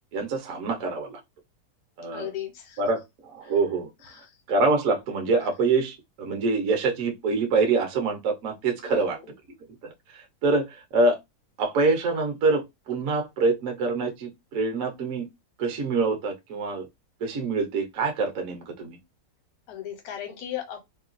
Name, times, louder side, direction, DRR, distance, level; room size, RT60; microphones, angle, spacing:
voice 1, 0.1-1.2 2.0-2.3 2.8-3.0 3.3-3.9 4.5-9.2 9.8-9.9 10.4-10.7 10.9-11.2 11.6-15.2 15.6-16.9 17.2-19.0, right 3 dB, 60° right, 1.0 m, -25 dB
voice 2, 2.1-2.8 3.4-3.6 4.0-4.4 5.4-5.5 8.9-9.3 19.7-20.8, left 11 dB, 65° left, 1.3 m, -37 dB
2.9 x 2.2 x 2.5 m
omnidirectional pair, 1.8 m